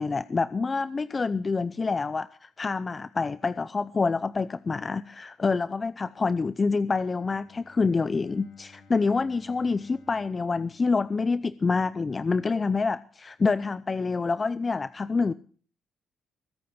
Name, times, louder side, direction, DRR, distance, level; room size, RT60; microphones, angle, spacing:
voice 1, 0.0-15.3, left 4 dB, 30° left, 0.6 m, -27 dB
Bowed string instrument, 6.9-11.8, left 3 dB, 65° left, 4.6 m, -58 dB
21.5 x 9.1 x 5.9 m
cardioid pair, 90°, 0 cm